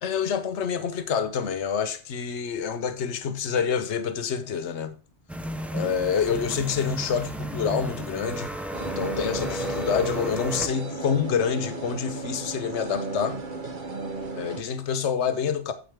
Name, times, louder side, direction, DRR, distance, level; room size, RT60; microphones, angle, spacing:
voice 1, 0.0-5.0 5.7-13.4 14.3-15.7, left 7 dB, 70° left, 1.2 m, -27 dB
sound 1, 5.3-10.7, right 1 dB, ahead, 0.4 m, -33 dB
sound 2, 8.7-14.6, right 3 dB, 45° right, 1.2 m, -34 dB
8.9 x 7.8 x 3.5 m
omnidirectional pair, 1.2 m